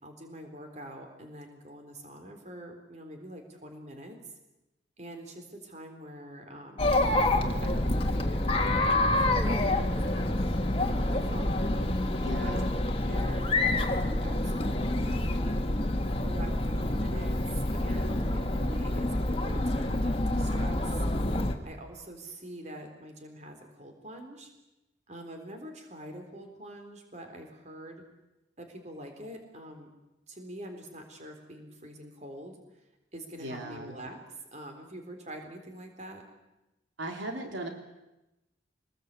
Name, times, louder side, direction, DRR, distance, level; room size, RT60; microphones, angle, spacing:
voice 1, 0.0-4.2 5.0-6.9 7.6-11.7 12.4-12.7 13.1-15.7 16.2-21.1 21.6-24.5 25.1-28.0 28.6-29.9 30.3-32.8 33.1-34.2 34.5-36.2, right 1 dB, 35° right, 4 dB, 3.9 m, -45 dB
Chatter, 6.8-21.5, left 1 dB, 30° left, 2.0 m, -27 dB
voice 2, 12.2-12.6 33.4-33.9 37.0-37.7, right 1 dB, 80° right, 3 dB, 3.6 m, -37 dB
26.5 x 20.5 x 8.4 m, 0.98 s
head